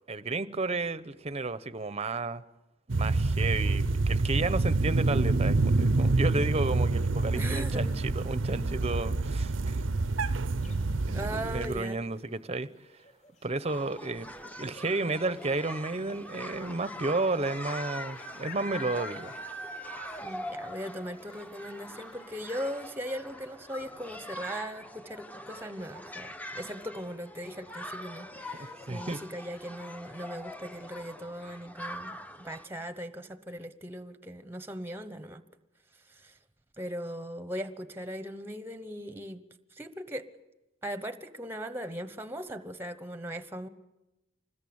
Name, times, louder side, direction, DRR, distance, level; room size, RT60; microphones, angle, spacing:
voice 1, 0.1-2.4 2.9-9.8 10.6-10.7 11.1-12.7 13.4-14.3 14.6-19.3 28.5-29.2, right 3 dB, 35° right, 0.8 m, -32 dB
sound 1, 2.9-11.8, right 3 dB, 90° right, 0.8 m, -27 dB
voice 2, 7.3-8.0 11.1-12.0 20.2-35.4 36.1-36.4 36.8-39.4 39.7-40.3 40.8-43.7, equal, 10° right, 1.1 m, -39 dB
sound 2, 10.6-11.1 12.9-13.3 13.6-13.7 13.9-14.4 15.2-15.3 15.5-15.6 17.1-17.2 18.2-20.5 20.8-20.9 21.4-21.5 22.0-22.1, equal, 40° left, 5.8 m, -43 dB
sound 3, 13.6-32.7, left 1 dB, 10° left, 1.0 m, -43 dB
25.5 x 20.5 x 8.7 m
head